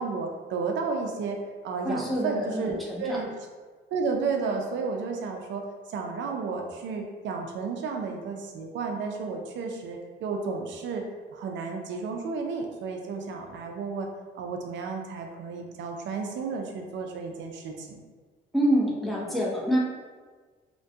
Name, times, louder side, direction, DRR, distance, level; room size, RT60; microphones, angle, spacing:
voice 1, 0.0-1.4 1.6-3.3 3.9-5.6 5.9-11.0 11.3-14.1 14.3-18.0, right 4 dB, 70° right, 3 dB, 0.4 m, -32 dB
voice 2, 1.8-3.2 18.5-19.8, equal, ahead, -5 dB, 0.6 m, -26 dB
2.2 x 2.1 x 2.6 m, 1.4 s
cardioid pair, 90°, 20 cm